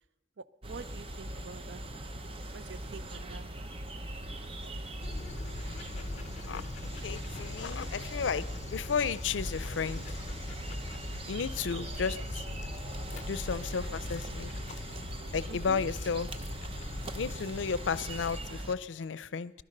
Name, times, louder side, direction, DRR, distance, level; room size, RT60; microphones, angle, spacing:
voice 1, 0.4-1.8 2.5-3.5 15.5-15.8, right 4 dB, 70° right, 15 dB, 0.6 m, -46 dB
sound 1, 0.6-18.7, right 1 dB, 30° right, 0.8 m, -41 dB
Dog, 5.0-18.4, left 2 dB, 40° left, 0.6 m, -42 dB
voice 2, 7.0-10.0 11.3-12.4 13.3-14.5 15.3-16.3 17.1-19.5, left 6 dB, 90° left, 18 dB, 0.5 m, -33 dB
18.5 x 11.5 x 6.5 m, 1.1 s
head